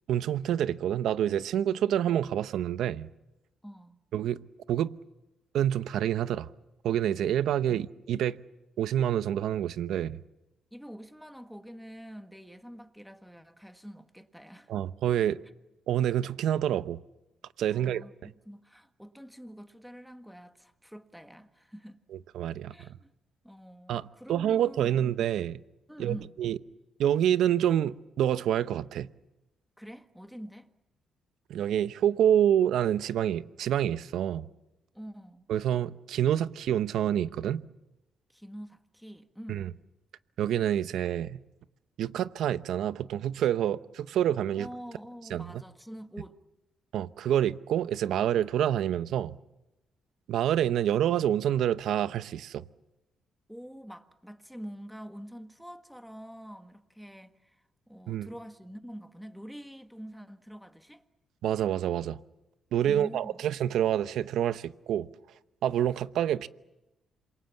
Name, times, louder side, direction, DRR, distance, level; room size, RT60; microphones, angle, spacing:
voice 1, 0.1-3.1 4.1-4.4 4.7-5.0 5.5-6.5 6.8-8.4 8.8-10.2 14.7-15.4 15.9-17.0 17.6-18.0 22.3-23.0 23.9-25.6 26.0-26.6 27.0-29.1 31.5-34.5 35.5-37.6 39.5-39.7 40.4-41.4 42.0-44.7 45.3-45.6 46.9-49.3 50.3-52.6 58.1-58.3 61.4-62.2 62.7-65.1 65.6-66.5, right 10 dB, 75° right, 0.8 m, -27 dB
voice 2, 3.6-4.0 10.7-14.7 17.7-22.0 22.7-23.1 23.4-25.0 25.9-26.4 29.8-30.7 34.9-35.5 38.3-39.7 44.6-46.4 53.5-61.0 62.8-63.4, equal, ahead, 1.6 m, -46 dB
27.5 x 23.5 x 7.3 m
cardioid pair, 90°, 0 cm